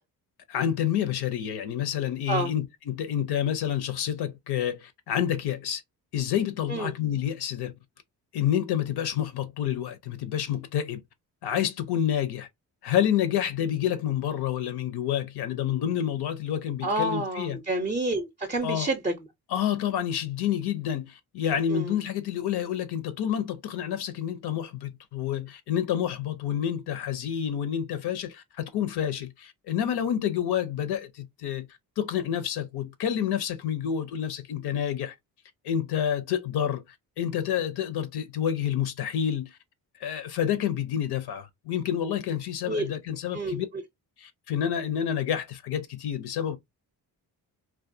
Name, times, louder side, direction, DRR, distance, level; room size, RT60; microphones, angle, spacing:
voice 1, 0.5-5.8 6.1-7.7 8.3-11.0 11.4-12.5 12.8-17.6 18.6-18.9 19.5-31.7 32.0-35.1 35.6-36.8 37.2-39.5 40.0-43.7 44.2-46.6, left 9 dB, 75° left, 0.6 m, -28 dB
voice 2, 16.8-19.1 21.7-21.9 42.7-42.8 43.3-43.6, right 2 dB, 20° right, 0.5 m, -28 dB
2.3 x 2.2 x 2.6 m
cardioid pair, 80°, 39 cm